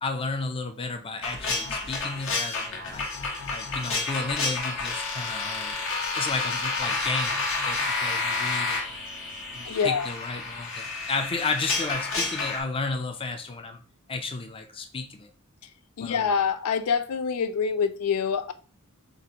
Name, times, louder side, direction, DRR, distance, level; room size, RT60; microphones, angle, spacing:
voice 1, 0.0-3.1 3.5-5.8 6.2-9.0 9.5-13.8 14.1-15.3 16.0-16.3, left 3 dB, 25° left, 0.5 m, -33 dB
sound 1, 1.2-12.6, left 3 dB, 65° left, 1.3 m, -30 dB
voice 2, 9.7-10.1 16.0-18.5, left 6 dB, 85° left, 0.4 m, -26 dB
6.5 x 2.5 x 2.9 m
head